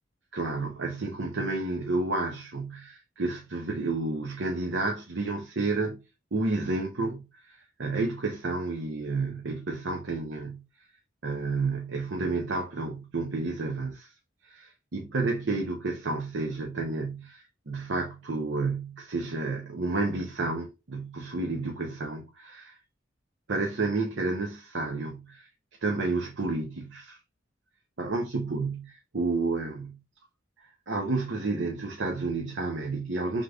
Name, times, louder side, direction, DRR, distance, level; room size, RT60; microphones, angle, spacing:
voice 1, 0.3-6.0 6.3-10.6 11.2-14.1 14.4-22.8 23.5-25.5 25.8-27.2 28.0-30.0 30.9-33.4, right 3 dB, 70° right, 0.7 m, -31 dB
4.9 x 3.8 x 2.3 m
head